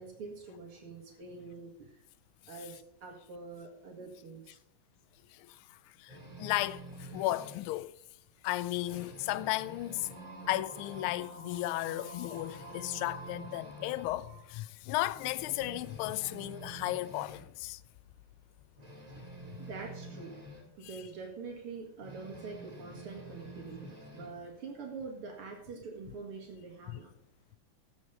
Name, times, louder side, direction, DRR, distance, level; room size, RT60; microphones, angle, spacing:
voice 1, 0.0-2.0 2.5-4.6 19.6-20.3 20.8-27.1, right 4 dB, 80° right, 2.7 m, -45 dB
voice 2, 5.3-7.9 8.4-10.1 10.5-17.8 20.8-21.0 26.9-27.0, left 16 dB, 80° left, 1.4 m, -35 dB
sound 1, 6.1-7.7 8.1-8.3 8.6-11.4 11.7-11.8 12.2-14.1 14.6-14.7 15.1-17.5 18.8-20.7 22.0-24.4, right 1 dB, 20° right, 2.3 m, -48 dB
sound 2, 10.0-14.5, right 2 dB, 40° right, 4.0 m, -49 dB
15.0 x 6.3 x 5.2 m
omnidirectional pair, 2.4 m